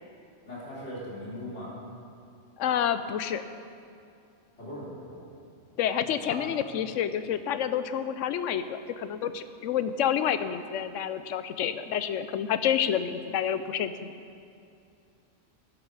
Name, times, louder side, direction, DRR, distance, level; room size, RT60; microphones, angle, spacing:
voice 1, 0.4-1.7 4.6-5.2 6.3-6.6, left 1 dB, 65° left, -7 dB, 3.6 m, -39 dB
voice 2, 2.6-3.4 5.8-14.1, left 9 dB, 85° left, 11 dB, 1.0 m, -29 dB
12.5 x 11.0 x 4.8 m, 2.5 s
omnidirectional pair, 1.3 m